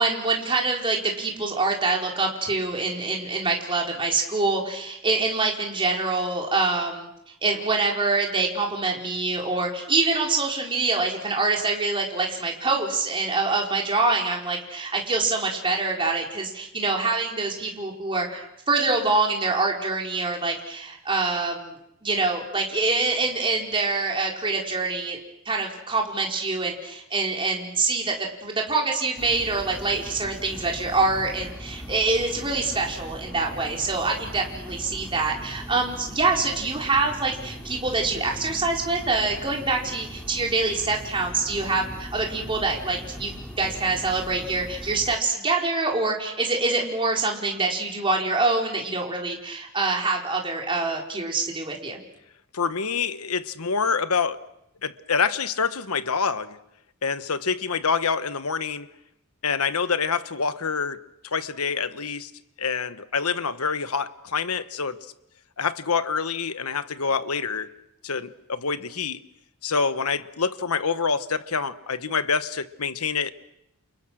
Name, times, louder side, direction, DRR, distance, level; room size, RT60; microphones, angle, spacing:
voice 1, 0.0-7.1 7.4-25.2 25.4-28.1 28.4-52.0, right 3 dB, 25° right, 4.6 m, -25 dB
sound 1, 29.2-45.2, equal, 5° left, 3.1 m, -40 dB
voice 2, 52.5-54.4 54.8-56.6 57.0-58.9 59.4-61.0 61.3-62.3 62.6-65.0 65.6-67.7 68.0-69.2 69.6-73.3, left 5 dB, 90° left, 1.2 m, -26 dB
29.5 x 29.0 x 6.4 m
head